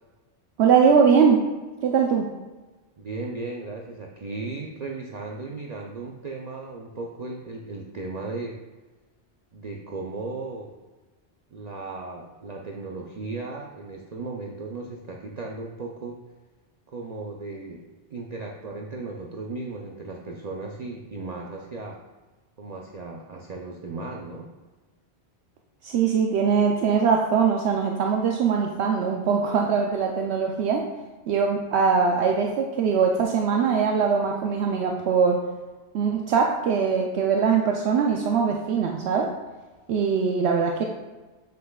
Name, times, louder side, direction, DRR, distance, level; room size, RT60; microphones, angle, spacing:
voice 1, 0.6-1.4 1.8-2.3 25.8-30.8 31.3-35.4 35.9-39.3 39.9-40.8, right 6 dB, 75° right, 1 dB, 0.9 m, -22 dB
voice 2, 3.0-8.6 9.5-10.8 11.5-16.2 16.9-22.0 22.6-24.5, right 3 dB, 50° right, 0 dB, 0.6 m, -36 dB
7.6 x 6.5 x 2.3 m, 1.2 s
omnidirectional pair, 1.1 m